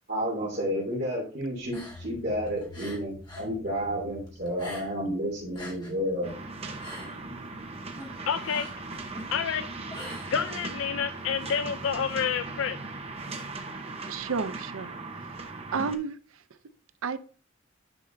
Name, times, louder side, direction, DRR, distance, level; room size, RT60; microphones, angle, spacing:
voice 1, 0.1-6.3, equal, 50° right, 2.7 m, -31 dB
sound 1, 1.6-3.5 3.8-5.1 5.4-10.9, left 1 dB, 20° left, 2.0 m, -45 dB
sound 2, 1.9-7.3, left 2 dB, 50° left, 3.4 m, -49 dB
sound 3, 6.2-16.0, right 3 dB, 30° right, 0.7 m, -38 dB
voice 2, 8.3-8.7 9.3-9.7 10.3-12.8, left 7 dB, 75° left, 0.4 m, -28 dB
voice 3, 14.1-14.9 15.7-16.2 17.0-17.2, right 5 dB, 90° right, 0.5 m, -31 dB
9.8 x 5.0 x 2.6 m
head